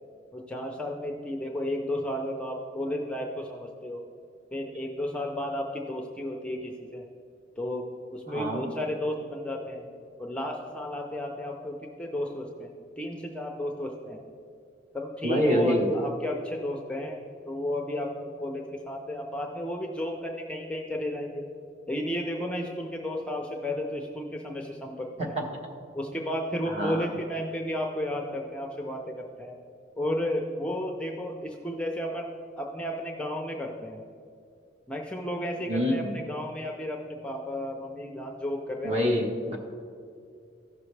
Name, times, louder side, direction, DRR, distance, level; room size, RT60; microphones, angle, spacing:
voice 1, 0.3-4.0 4.5-7.1 7.6-7.9 8.1-9.9 10.2-14.2 14.9-17.2 17.5-21.5 21.9-25.4 25.9-29.5 30.0-32.3 32.6-34.0 34.9-39.1, left 1 dB, 5° left, 0 dB, 0.5 m, -33 dB
voice 2, 8.3-8.6 15.2-15.9 25.2-25.3 26.7-27.1 35.7-36.1 38.8-39.6, equal, 35° right, 0 dB, 1.3 m, -26 dB
15.0 x 6.0 x 3.3 m, 2.4 s
head